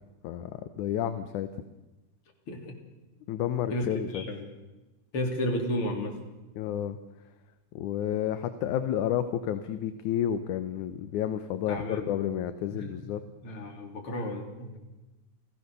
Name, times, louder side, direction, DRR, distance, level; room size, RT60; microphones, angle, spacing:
voice 1, 0.2-1.5 3.3-4.2 6.6-7.0 7.8-13.2 13.5-13.7, left 10 dB, 70° left, 10 dB, 2.3 m, -31 dB
voice 2, 2.5-2.8 3.7-4.5 5.1-6.2 11.7-12.1 12.7-13.0 13.4-14.8, left 1 dB, 40° left, 3 dB, 4.0 m, -33 dB
29.5 x 17.0 x 6.8 m, 1.1 s
omnidirectional pair, 3.8 m